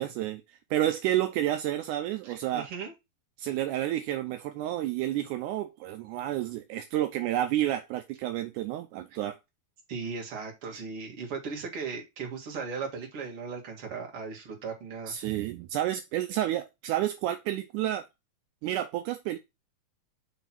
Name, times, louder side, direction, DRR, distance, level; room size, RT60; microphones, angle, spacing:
voice 1, 0.0-2.7 3.4-9.4 15.1-18.1 18.6-19.4, right 13 dB, 80° right, 1.8 m, -30 dB
voice 2, 2.2-2.9 9.9-15.1, right 5 dB, 45° right, 2.3 m, -37 dB
5.8 x 3.5 x 5.8 m
omnidirectional pair, 4.1 m